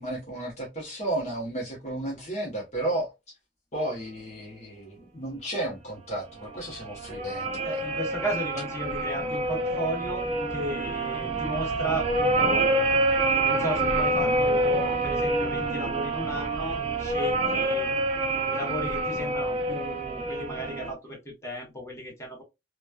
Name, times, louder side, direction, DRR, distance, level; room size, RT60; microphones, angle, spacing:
voice 1, 0.0-3.1 3.7-8.0, right 1 dB, 40° left, 0.9 m, -33 dB
sound 1, 6.5-20.9, right 2 dB, 35° right, 0.5 m, -27 dB
voice 2, 7.6-12.6 13.4-17.9 18.5-22.4, equal, 15° left, 1.0 m, -35 dB
3.0 x 2.2 x 2.3 m
head